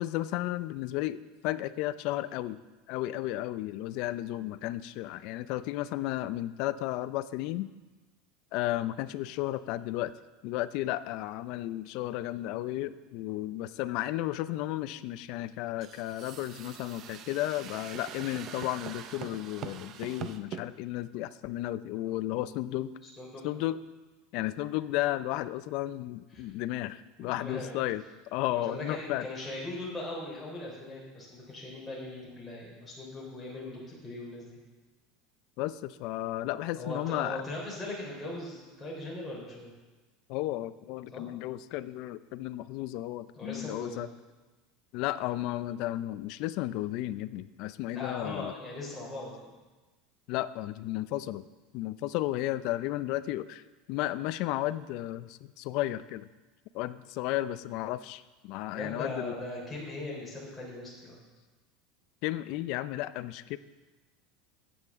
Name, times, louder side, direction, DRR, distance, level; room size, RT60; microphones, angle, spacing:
voice 1, 0.0-2.6 2.9-7.7 8.5-10.1 10.4-22.9 23.4-23.8 24.3-28.0 28.3-29.3 35.6-37.4 40.3-44.1 44.9-48.5 50.3-51.4 51.7-53.6 53.9-56.3 56.7-59.4 62.2-63.6, left 15 dB, 50° left, 15 dB, 0.4 m, -33 dB
sound 1, 15.8-20.6, right 8 dB, 35° right, 0.5 m, -43 dB
voice 2, 27.2-27.8 28.5-34.6 36.7-39.7 41.1-41.3 43.4-44.0 47.9-49.5 58.7-61.2, left 2 dB, 5° left, -6 dB, 3.5 m, -39 dB
14.5 x 8.7 x 3.6 m, 1.2 s
supercardioid pair, 165°, 0 cm